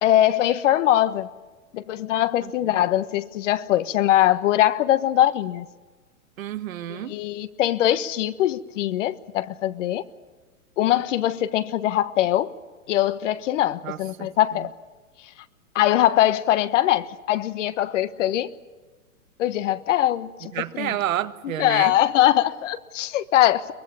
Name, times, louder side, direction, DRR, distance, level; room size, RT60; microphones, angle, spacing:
voice 1, 0.0-1.3 1.7-5.6 7.1-10.0 10.8-12.5 12.9-14.7 15.7-18.5 19.4-20.9 21.4-23.7, left 13 dB, 55° left, 12 dB, 1.4 m, -22 dB
voice 2, 6.4-7.2 13.8-14.7 20.5-21.9, right 12 dB, 70° right, 10 dB, 1.5 m, -30 dB
23.0 x 20.0 x 8.6 m, 1.3 s
hypercardioid pair, 125°, 43 cm